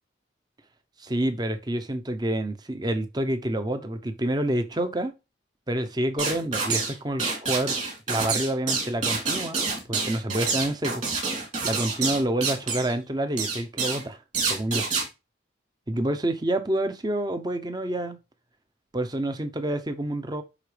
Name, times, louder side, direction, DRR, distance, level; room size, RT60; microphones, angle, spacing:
voice 1, 1.0-5.1 5.7-7.8 8.1-9.6 9.9-11.0 11.6-14.2 14.5-14.9 15.9-18.2 18.9-20.4, right 1 dB, 20° right, 0.7 m, -28 dB
sound 1, 6.2-6.9 7.2-12.9 13.4-14.0 14.3-15.1, right 4 dB, 40° right, 3.0 m, -27 dB
10.0 x 3.9 x 3.3 m
head